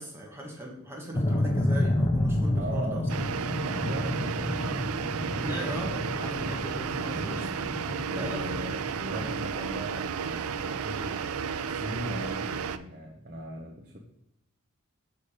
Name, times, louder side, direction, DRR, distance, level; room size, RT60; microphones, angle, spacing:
voice 1, 0.0-3.0 5.4-7.5 8.1-8.7 13.8-14.0, right 1 dB, 10° right, -1 dB, 1.0 m, -39 dB
sound 1, 1.1-9.4, left 1 dB, 20° left, 0.5 m, -30 dB
voice 2, 2.6-3.1 3.6-6.0 6.4-6.6 7.1-7.5 8.1-14.0, right 1 dB, 40° right, -1 dB, 0.8 m, -39 dB
sound 2, 3.1-12.8, right 6 dB, 85° right, 0.4 m, -33 dB
6.9 x 4.2 x 4.8 m, 0.81 s
head